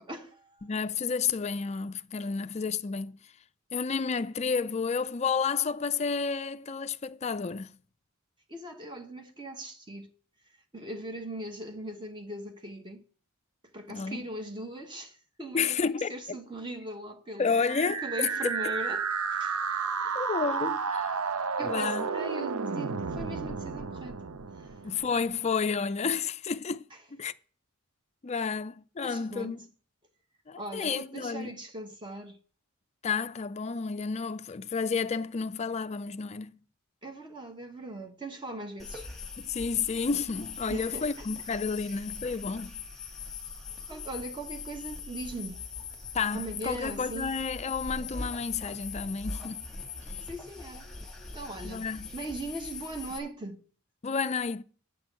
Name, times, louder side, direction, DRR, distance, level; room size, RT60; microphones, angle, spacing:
voice 1, 0.0-0.7 8.5-10.1 10.7-13.0 13.7-17.6 18.0-19.0 19.3-19.6 20.0-20.1 21.6-24.3 24.6-24.7 26.9-27.0 29.0-29.6 30.6-32.4 37.0-39.1 40.7-41.1 43.9-45.6 46.3-47.3 50.3-50.9 51.3-53.6, right 2 dB, 20° right, 1.4 m, -40 dB
voice 2, 0.6-3.2 3.7-7.7 13.9-14.3 15.5-16.4 17.4-18.0 20.1-21.2 21.6-22.1 24.8-26.8 27.1-27.3 28.2-29.6 30.5-31.5 33.0-36.6 39.4-42.8 46.1-49.7 51.6-52.1 54.0-54.6, left 5 dB, 30° left, 0.4 m, -31 dB
sound 1, 17.4-25.4, right 5 dB, 85° right, 0.7 m, -32 dB
sound 2, 38.8-53.2, left 4 dB, ahead, 2.0 m, -41 dB
9.0 x 6.2 x 7.5 m
head